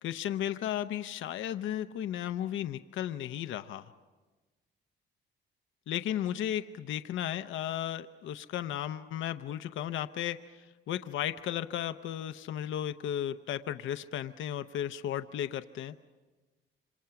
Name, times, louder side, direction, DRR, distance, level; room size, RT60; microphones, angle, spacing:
voice 1, 0.0-3.9 5.9-15.9, left 11 dB, 75° left, 9 dB, 0.7 m, -35 dB
27.0 x 26.0 x 5.8 m, 1.3 s
cardioid pair, 90°, 20 cm